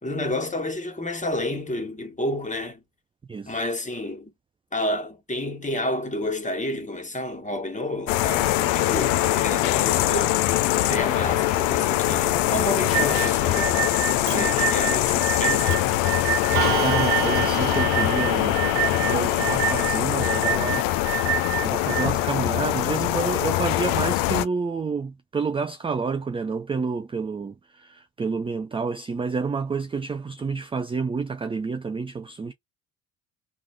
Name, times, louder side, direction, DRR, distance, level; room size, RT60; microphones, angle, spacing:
voice 1, 0.0-2.8 3.5-4.3 4.7-10.4 10.8-15.8, left 1 dB, 15° left, 1.5 m, -30 dB
sound 1, 8.1-24.4, left 15 dB, 70° left, 0.6 m, -23 dB
sound 2, 12.9-22.1, right 12 dB, 80° right, 0.7 m, -28 dB
Clock, 14.3-14.4 15.4-15.5 15.7-16.0 16.6-19.8, right 13 dB, 60° right, 1.1 m, -30 dB
voice 2, 16.8-18.6 18.9-21.3 21.6-32.5, right 4 dB, 10° right, 0.4 m, -29 dB
3.6 x 2.5 x 3.3 m
hypercardioid pair, 55°, 49 cm